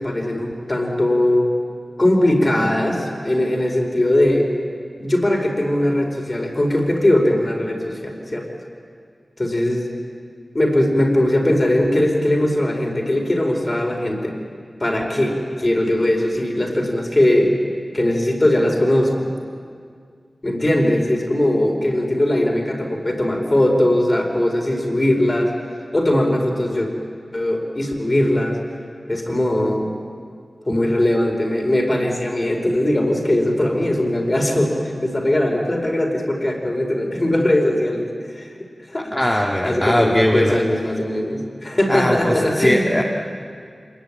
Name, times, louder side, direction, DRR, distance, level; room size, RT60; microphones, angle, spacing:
voice 1, 0.0-1.5 2.0-4.5 5.0-8.5 9.4-9.9 10.5-14.3 14.8-17.6 17.9-19.3 20.4-25.5 25.9-26.9 27.3-28.6 29.1-29.9 30.7-38.5 38.9-39.1 39.6-43.0, left 1 dB, 35° left, 1 dB, 4.9 m, -20 dB
voice 2, 39.1-40.5 41.9-43.0, equal, 15° left, -1 dB, 1.9 m, -19 dB
26.5 x 21.5 x 9.1 m, 2.2 s
wide cardioid pair, 80°, 0 cm